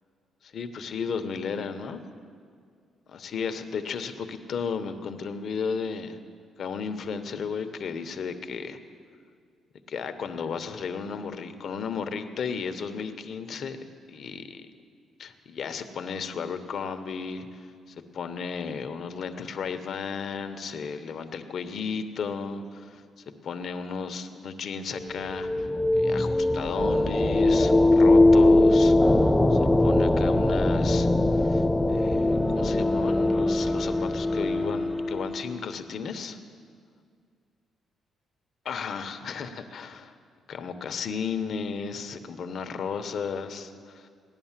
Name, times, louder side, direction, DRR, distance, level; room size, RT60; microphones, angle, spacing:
voice 1, 0.4-2.0 3.1-6.2 6.6-8.8 9.9-13.8 14.1-14.7 15.2-17.6 17.9-25.7 25.9-36.4 38.6-40.1 40.5-44.1, left 5 dB, 60° left, 8 dB, 1.0 m, -34 dB
sound 1, 25.0-35.5, left 2 dB, 10° left, 0.5 m, -21 dB
16.5 x 10.5 x 7.4 m, 2.2 s
cardioid pair, 90°, 0 cm